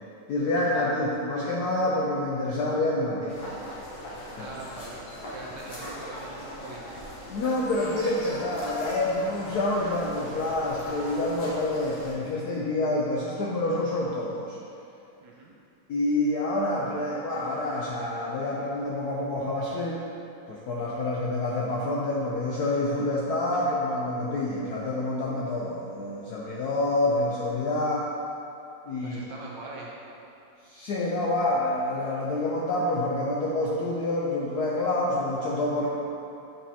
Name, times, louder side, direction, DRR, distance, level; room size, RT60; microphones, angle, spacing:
voice 1, 0.3-3.4 4.3-4.5 7.3-14.6 15.9-20.0 20.5-28.1 28.9-29.2 30.6-35.9, left 2 dB, 75° left, -4 dB, 0.9 m, -27 dB
sound 1, 3.3-12.1, left 1 dB, 50° left, 1.5 m, -39 dB
voice 2, 4.4-5.0 5.3-6.8 15.2-15.5 29.0-29.9, right 2 dB, 70° right, -3 dB, 1.1 m, -42 dB
8.5 x 5.1 x 2.8 m, 2.7 s
omnidirectional pair, 2.4 m